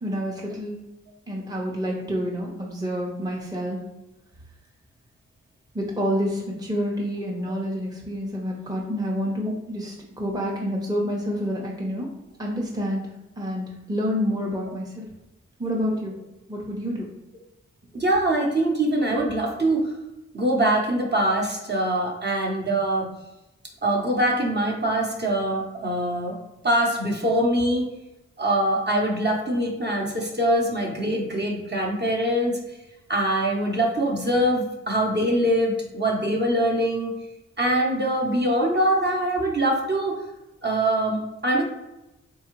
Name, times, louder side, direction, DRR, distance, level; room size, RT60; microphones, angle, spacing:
voice 1, 0.0-0.8 1.3-3.8 5.7-12.1 12.4-13.0 13.4-15.1 15.6-16.1 16.5-17.1, equal, 15° right, -2 dB, 0.8 m, -28 dB
voice 2, 17.9-19.8 20.3-23.1 23.8-26.4 26.6-27.8 28.4-32.6 33.1-37.1 37.6-40.2 40.6-41.6, right 1 dB, 35° right, -1 dB, 0.9 m, -23 dB
3.5 x 2.3 x 3.0 m, 0.96 s
cardioid pair, 45°, 29 cm